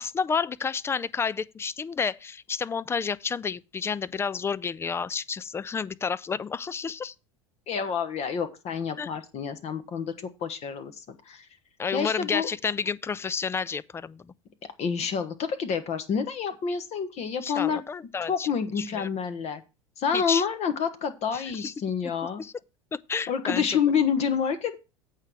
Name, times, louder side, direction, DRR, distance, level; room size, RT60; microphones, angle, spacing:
voice 1, 0.0-7.1 9.0-9.1 11.8-14.3 17.4-18.5 18.8-19.1 20.1-20.4 21.3-21.7 22.4-22.5 23.1-23.8, left 6 dB, 15° left, 0.4 m, -30 dB
voice 2, 7.7-10.1 10.4-11.4 11.9-12.5 14.8-17.8 18.3-19.6 20.0-22.4 23.3-24.8, left 6 dB, 40° left, 1.3 m, -28 dB
8.3 x 4.8 x 6.8 m
hypercardioid pair, 80°, 17 cm